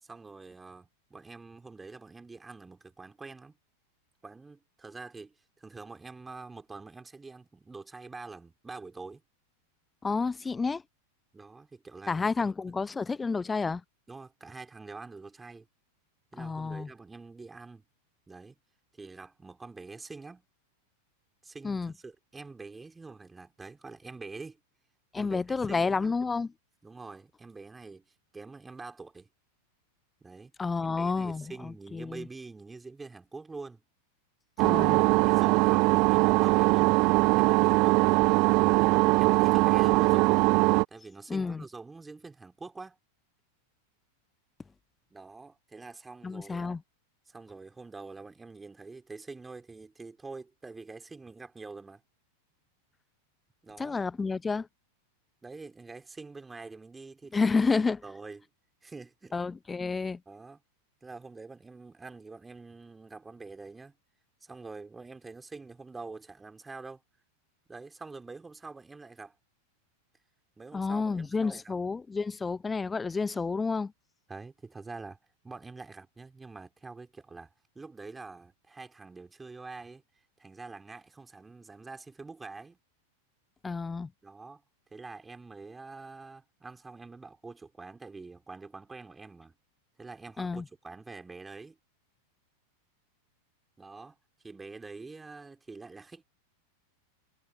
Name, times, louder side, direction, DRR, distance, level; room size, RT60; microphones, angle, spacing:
voice 1, 0.0-3.6 4.2-9.2 11.3-12.8 14.1-15.7 16.3-17.8 18.3-18.6 18.9-20.4 21.4-24.6 25.2-26.2 26.8-29.3 30.2-30.5 30.8-33.8 35.0-38.1 39.2-40.4 40.9-43.0 45.1-46.7 47.3-52.0 53.6-54.0 55.4-57.6 58.0-58.5 58.8-59.3 60.3-60.6 61.0-64.0 64.4-67.0 67.7-69.4 70.6-71.8 74.3-75.2 75.4-80.0 80.4-82.8 84.2-84.6 84.9-89.5 90.0-91.8 93.8-94.2 94.4-96.2, right 3 dB, 10° right, 3.6 m, -46 dB
voice 2, 10.0-10.8 12.1-13.8 16.4-16.9 21.6-21.9 25.1-26.5 30.6-32.3 34.6-35.1 41.3-41.6 46.2-46.8 53.8-54.7 57.3-58.0 59.3-60.2 70.7-73.9 83.6-84.1 90.4-90.6, left 4 dB, 15° left, 0.7 m, -30 dB
sound 1, 34.6-40.8, right 27 dB, 40° right, 0.3 m, -22 dB
figure-of-eight pair, 90°, 0 cm